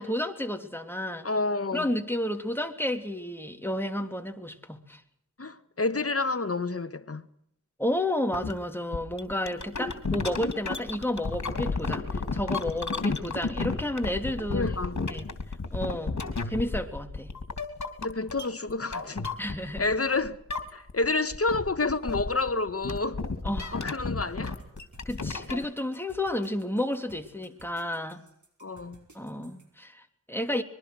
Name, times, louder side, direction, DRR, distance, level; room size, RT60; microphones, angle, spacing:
voice 1, 0.0-1.3 1.7-5.0 7.8-14.6 15.1-15.3 15.7-16.2 16.4-17.3 19.4-19.9 23.4-23.7 25.0-28.2 29.1-30.6, left 1 dB, 5° left, 3.2 m, -31 dB
voice 2, 1.2-1.9 5.4-7.2 14.5-15.0 18.0-19.3 19.8-20.4 20.7-23.2 23.7-24.6 28.6-29.0, left 3 dB, 50° left, 1.6 m, -29 dB
sound 1, 8.3-8.5 8.9-20.0 20.2-21.1 21.3-25.7, left 3 dB, 70° left, 3.2 m, -32 dB
sound 2, 24.4-29.7, right 3 dB, 75° right, 5.2 m, -57 dB
25.5 x 22.0 x 6.4 m
wide cardioid pair, 65°, 30 cm